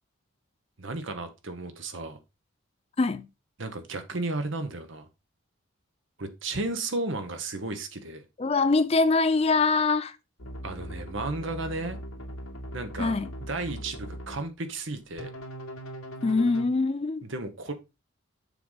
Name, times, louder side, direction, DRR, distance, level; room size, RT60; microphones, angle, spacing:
voice 1, 0.8-2.2 3.6-5.1 6.2-8.2 10.6-12.0 12.7-15.3 17.2-17.7, right 2 dB, 65° right, 1.1 m, -34 dB
voice 2, 8.4-10.2 13.0-13.3 16.2-17.2, left 3 dB, 30° left, 0.4 m, -23 dB
sound 1, 10.4-14.4 15.2-16.6, equal, 90° left, 2.0 m, -40 dB
6.8 x 5.0 x 3.9 m
head